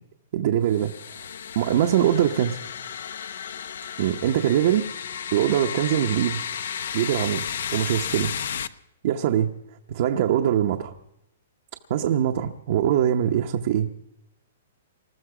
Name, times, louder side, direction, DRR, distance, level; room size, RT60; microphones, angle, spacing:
voice 1, 0.3-0.9 1.5-2.6 4.0-4.9 5.3-6.4 6.9-7.4 7.7-8.3 9.0-9.5 9.9-10.9 11.9-13.9, right 10 dB, 45° right, 3 dB, 0.8 m, -22 dB
sound 1, 0.7-8.7, left 8 dB, 75° left, 0.7 m, -33 dB
20.0 x 14.0 x 4.9 m, 0.84 s
hypercardioid pair, 170°, 0 cm